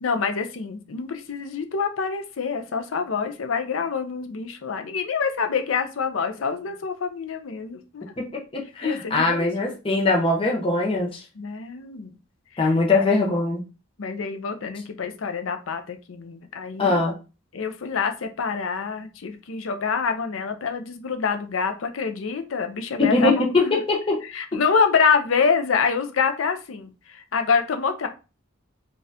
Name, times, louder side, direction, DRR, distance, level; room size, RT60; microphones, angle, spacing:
voice 1, 0.0-8.0 8.8-9.5 11.4-12.1 12.5-13.1 14.0-17.0 17.5-23.3 23.6-23.8 24.3-28.1, left 5 dB, 90° left, 7 dB, 0.5 m, -26 dB
voice 2, 8.5-11.2 12.6-13.6 16.8-17.1 23.0-24.2, left 3 dB, 25° left, -1 dB, 0.7 m, -21 dB
4.1 x 2.4 x 2.7 m, 0.31 s
head